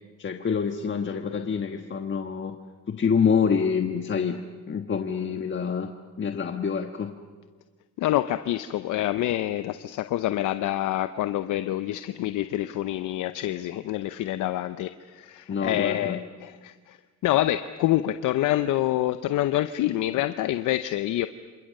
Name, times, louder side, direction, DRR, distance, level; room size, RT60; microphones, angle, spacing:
voice 1, 0.2-2.6 2.9-4.4 4.7-7.1 15.5-16.2, left 6 dB, 40° left, 4 dB, 1.5 m, -26 dB
voice 2, 8.0-21.3, left 14 dB, 85° left, 11 dB, 0.8 m, -27 dB
29.0 x 26.5 x 6.7 m, 1.4 s
cardioid pair, 90°, 30 cm